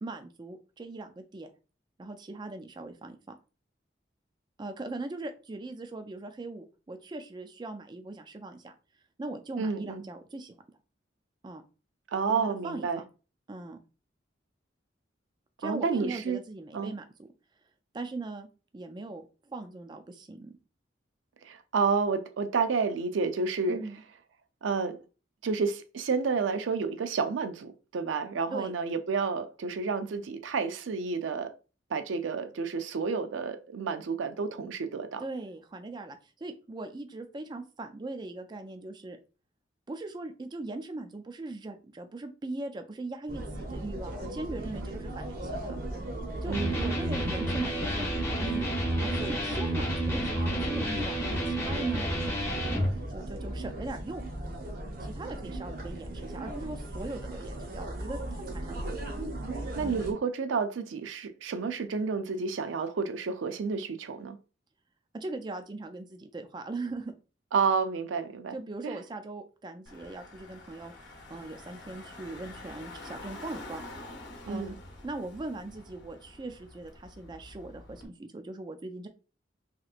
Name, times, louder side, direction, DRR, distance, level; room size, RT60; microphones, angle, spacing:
voice 1, 0.0-1.5 2.0-3.4 4.6-8.8 9.2-10.5 11.4-11.6 12.3-13.0 13.5-13.8 15.6-17.3 17.9-18.5 18.7-20.5 23.7-24.0 28.5-28.7 35.2-39.2 39.9-45.7 46.4-48.0 48.4-52.1 53.1-54.2 55.0-58.9 59.8-60.2 65.1-67.2 68.5-73.8 74.5-74.8 75.0-79.1, right 2 dB, 25° right, 0.3 m, -40 dB
voice 2, 9.6-10.0 12.1-13.0 15.6-16.4 16.7-16.9 21.4-23.8 24.6-25.0 25.4-31.5 31.9-35.2 46.5-46.9 59.8-64.4 67.5-68.6 68.8-69.0 74.5-74.8, right 5 dB, 85° right, 0.4 m, -30 dB
sound 1, 43.3-60.1, right 1 dB, 50° right, 0.7 m, -37 dB
Electric guitar, 46.5-52.9, right 1 dB, 15° left, 0.7 m, -30 dB
Car / Engine, 69.9-78.1, left 2 dB, 70° left, 0.8 m, -47 dB
3.2 x 2.9 x 2.4 m
head